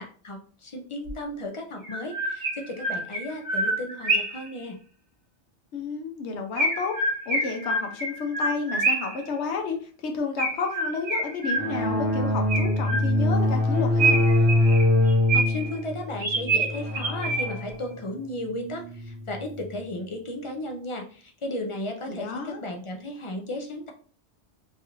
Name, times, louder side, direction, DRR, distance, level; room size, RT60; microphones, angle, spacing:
voice 1, 0.0-4.8 15.3-23.9, left 1 dB, 50° left, 3 dB, 0.4 m, -35 dB
Chirp tweet, 1.1-1.2 1.8-4.5 6.6-9.2 10.4-12.0 12.5-13.4 14.0-15.7 16.2-17.7, right 2 dB, 65° right, 1.3 m, -27 dB
voice 2, 5.7-14.2 22.1-22.6, left 4 dB, 80° left, 3 dB, 1.0 m, -31 dB
sound 1, 11.6-19.7, left 1 dB, 10° right, 0.8 m, -24 dB
3.1 x 2.4 x 2.9 m, 0.42 s
omnidirectional pair, 1.2 m